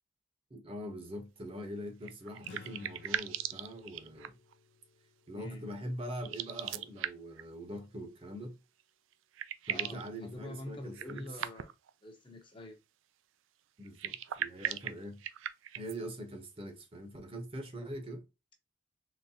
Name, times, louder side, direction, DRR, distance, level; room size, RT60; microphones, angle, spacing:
voice 1, 0.5-4.4 5.3-8.6 9.7-11.3 13.8-15.2 15.7-18.2, equal, 30° right, 0.8 m, -43 dB
sound 1, 2.0-4.5 6.2-7.4 8.8-8.9 9.1-10.1 10.9-11.9 13.8-16.0, right 10 dB, 80° right, 0.4 m, -39 dB
sound 2, 2.4-7.1, left 5 dB, 60° left, 0.3 m, -58 dB
voice 2, 5.3-5.7 9.7-11.7 12.0-12.8, left 1 dB, 25° left, 0.7 m, -46 dB
4.0 x 3.2 x 2.7 m
head